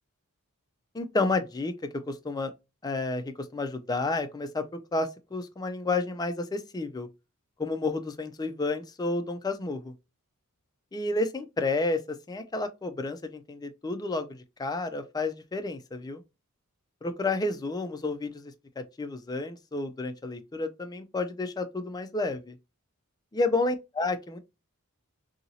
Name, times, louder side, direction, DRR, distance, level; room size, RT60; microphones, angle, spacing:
voice 1, 0.9-1.7 2.1-2.5 2.8-7.1 7.6-9.9 10.9-16.2 17.0-22.6 23.3-24.4, left 3 dB, 15° left, 0.3 m, -31 dB
2.8 x 2.7 x 2.7 m
head